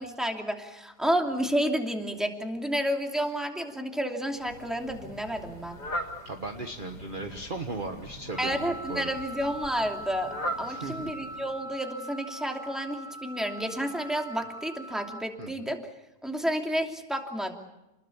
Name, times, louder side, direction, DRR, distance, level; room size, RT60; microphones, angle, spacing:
voice 1, 0.0-5.8 8.4-15.8 16.2-17.5, equal, ahead, 3 dB, 2.7 m, -30 dB
Fowl, 4.3-11.7, equal, 75° left, 3.5 m, -40 dB
voice 2, 6.2-9.1 10.7-11.1 15.4-15.7, right 3 dB, 30° right, 5 dB, 1.5 m, -37 dB
Wind instrument woodwind instrument, 8.3-15.3, right 1 dB, 40° left, 1.6 m, -42 dB
29.5 x 21.0 x 7.2 m, 0.96 s
omnidirectional pair, 1.8 m